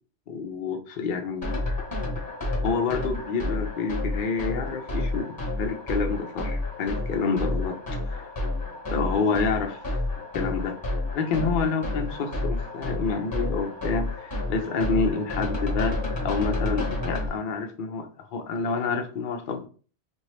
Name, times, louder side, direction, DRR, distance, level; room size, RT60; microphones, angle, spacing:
voice 1, 0.3-1.6 2.6-5.3 5.6-7.8 8.1-8.2 8.9-9.8 10.3-10.8 11.1-16.0 16.2-19.7, left 4 dB, 55° left, 4 dB, 0.6 m, -28 dB
sound 1, 1.4-17.3, left 2 dB, 20° left, 1.1 m, -30 dB
2.8 x 2.7 x 3.2 m, 0.39 s
omnidirectional pair, 1.2 m